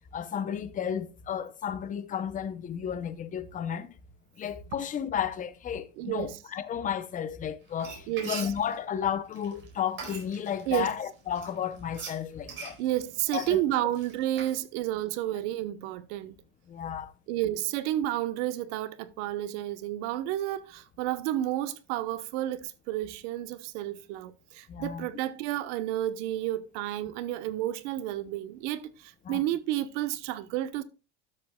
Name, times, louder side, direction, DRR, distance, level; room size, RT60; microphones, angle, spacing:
voice 1, 0.1-3.9 4.4-12.8 13.3-13.6 16.7-17.1 24.7-25.1 29.2-29.4, left 8 dB, 20° left, 0.6 m, -33 dB
voice 2, 6.0-6.4 8.1-8.3 10.7-10.9 12.8-16.3 17.3-30.8, right 13 dB, 70° right, 1.0 m, -31 dB
Frying (food), 7.7-10.9 11.3-14.6, right 5 dB, 30° right, 4.5 m, -42 dB
12.5 x 7.5 x 2.2 m
supercardioid pair, 135°, 37 cm